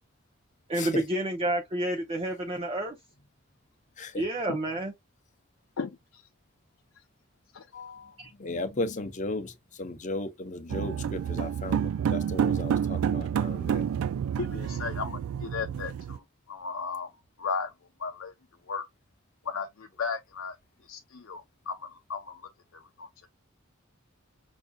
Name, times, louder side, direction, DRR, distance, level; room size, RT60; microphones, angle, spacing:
voice 1, 0.7-3.0 4.2-4.9 8.2-8.3, right 1 dB, 30° right, 0.6 m, -29 dB
voice 2, 5.8-6.3 7.5-8.2 14.4-17.1 17.4-17.7 18.0-18.3 18.7-18.9 19.4-20.6 20.9-23.1, left 5 dB, 75° left, 0.6 m, -36 dB
voice 3, 8.4-13.9, left 2 dB, 35° left, 0.7 m, -35 dB
sound 1, 10.7-16.2, right 8 dB, 85° right, 0.3 m, -29 dB
5.7 x 2.6 x 2.2 m
head